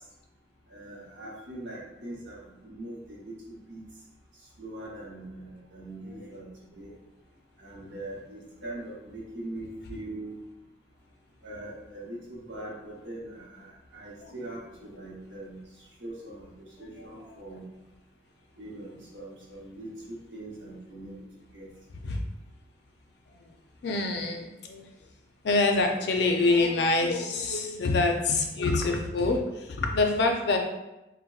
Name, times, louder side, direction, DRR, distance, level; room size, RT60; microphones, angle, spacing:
voice 1, 0.7-3.8 4.6-6.9 7.6-10.4 11.4-15.6 16.0-17.6 18.6-21.3 21.5-21.7 22.0-22.1, right 1 dB, 75° right, -4 dB, 0.9 m, -42 dB
voice 2, 17.0-17.6 22.0-22.2 23.4-23.5 23.8-24.9 25.4-30.6, left 3 dB, 65° left, 3 dB, 0.4 m, -26 dB
4.0 x 2.1 x 2.3 m, 0.97 s
head